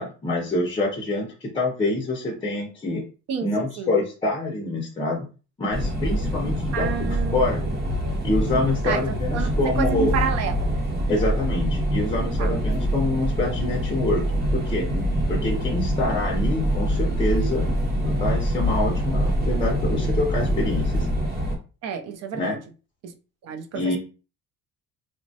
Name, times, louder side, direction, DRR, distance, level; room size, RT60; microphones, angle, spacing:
voice 1, 0.0-3.0 3.4-5.3 5.6-7.6 8.2-10.2 11.1-14.9 15.3-17.7 18.0-21.1 22.3-22.5 23.7-24.0, left 2 dB, 15° left, 0.5 m, -26 dB
voice 2, 3.3-3.9 6.7-7.7 8.8-10.7 12.4-12.5 21.8-22.6 23.0-23.1 23.4-24.0, right 7 dB, 55° right, 0.5 m, -30 dB
sound 1, 5.7-21.6, equal, 30° right, 0.8 m, -25 dB
3.0 x 2.1 x 2.6 m
cardioid pair, 155°, 31 cm